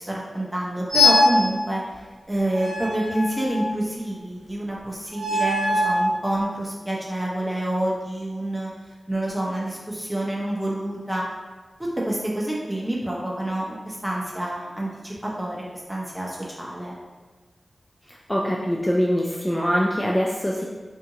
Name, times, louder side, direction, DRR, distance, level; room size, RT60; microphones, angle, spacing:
voice 1, 0.0-1.8 2.3-8.7 9.1-11.2 11.8-16.9, right 1 dB, 15° right, -4 dB, 0.7 m, -28 dB
sound 1, 0.9-1.4 2.6-3.8 5.1-6.0, left 2 dB, 70° right, 0.9 m, -21 dB
voice 2, 18.1-20.6, equal, 20° left, -3 dB, 0.3 m, -23 dB
2.7 x 2.5 x 2.6 m, 1.3 s
cardioid pair, 50°, 0 cm